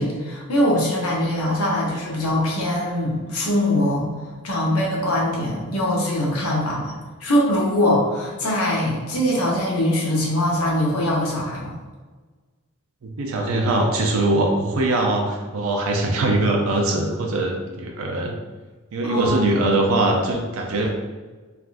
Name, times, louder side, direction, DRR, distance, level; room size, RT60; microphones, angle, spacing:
voice 1, 0.0-4.1 4.4-11.8 19.0-19.6, left 1 dB, 85° left, -3 dB, 0.8 m, -22 dB
voice 2, 13.0-18.3 18.9-20.9, right 2 dB, 75° right, 1 dB, 0.4 m, -22 dB
3.5 x 2.3 x 2.5 m, 1.3 s
head